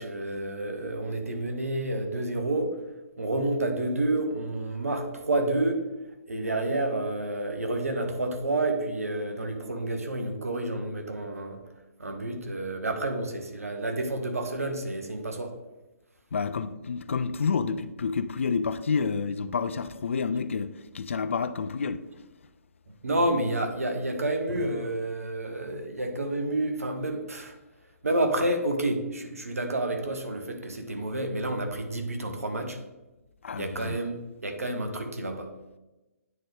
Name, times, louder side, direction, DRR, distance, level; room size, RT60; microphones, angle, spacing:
voice 1, 0.0-2.8 3.2-5.8 6.3-11.6 12.0-15.5 23.0-27.6 28.0-32.8 33.6-35.5, right 1 dB, 70° right, 1.1 m, -29 dB
voice 2, 16.3-22.0 33.4-34.0, left 5 dB, 55° left, 0.4 m, -29 dB
9.3 x 3.8 x 3.4 m
figure-of-eight pair, 130°, 8 cm